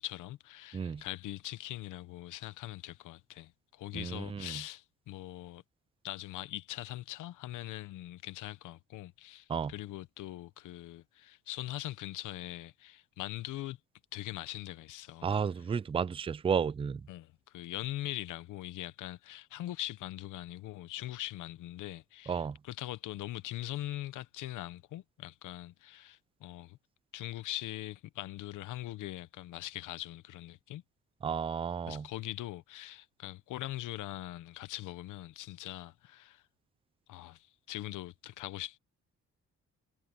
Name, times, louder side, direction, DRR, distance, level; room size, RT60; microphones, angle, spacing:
voice 1, 0.0-5.6 6.0-13.8 14.1-15.4 17.1-26.8 27.1-30.8 31.9-36.4 37.1-38.8, left 15 dB, 85° left, 1.0 m, -42 dB
voice 2, 3.9-4.6 9.5-9.7 15.2-17.0 22.3-22.6 31.2-32.1, right 7 dB, 20° right, 0.4 m, -32 dB
cardioid pair, 90°, 30 cm